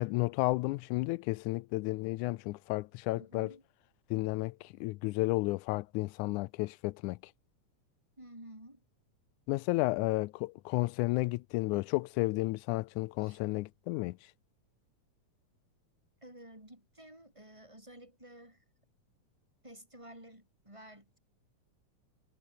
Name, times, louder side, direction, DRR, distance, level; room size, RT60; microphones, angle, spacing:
voice 1, 0.0-3.5 4.1-7.2 9.5-14.2, left 20 dB, 80° left, 2.0 m, -32 dB
voice 2, 3.1-3.6 8.2-8.8 13.2-13.4 16.2-18.6 19.6-21.2, right 1 dB, 10° right, 7.8 m, -52 dB
omnidirectional pair, 3.6 m